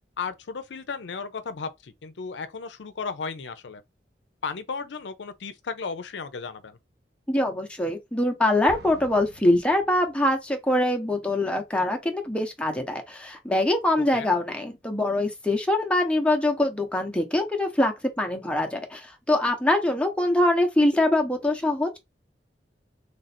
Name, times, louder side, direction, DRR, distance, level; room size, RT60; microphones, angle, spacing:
voice 1, 0.2-3.8 4.4-6.8 14.1-14.3, left 5 dB, 90° left, 0.5 m, -34 dB
voice 2, 7.3-22.0, left 1 dB, 5° left, 0.8 m, -24 dB
Explosion, 8.7-10.4, right 1 dB, 60° right, 1.0 m, -46 dB
3.3 x 2.5 x 4.2 m
head